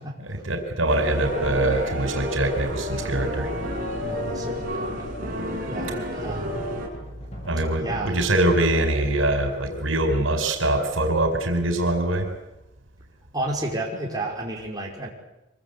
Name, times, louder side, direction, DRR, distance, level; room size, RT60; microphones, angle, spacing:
voice 1, 0.2-3.5 7.5-12.3, right 1 dB, 85° right, 6 dB, 4.7 m, -23 dB
sound 1, 0.9-6.9, equal, 45° right, 6.3 m, -31 dB
sound 2, 2.7-9.9, equal, 35° left, 7.6 m, -39 dB
voice 2, 4.0-5.0 5.7-6.6 7.8-8.2 13.3-15.1, right 1 dB, 20° right, -2 dB, 5.2 m, -31 dB
25.5 x 23.5 x 8.3 m, 0.92 s
head